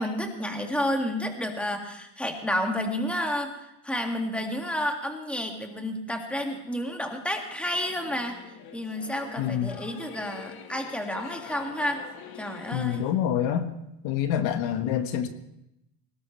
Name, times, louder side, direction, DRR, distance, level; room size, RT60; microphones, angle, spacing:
voice 1, 0.0-8.4 8.7-12.0 12.4-13.1, left 1 dB, ahead, 3 dB, 2.1 m, -30 dB
Singing / Musical instrument, 7.6-13.1, left 8 dB, 45° left, 1.5 m, -45 dB
voice 2, 9.4-9.7 12.7-13.7 14.0-15.3, left 10 dB, 65° left, 8 dB, 1.4 m, -26 dB
20.5 x 18.5 x 3.3 m, 0.84 s
supercardioid pair, 120°, 49 cm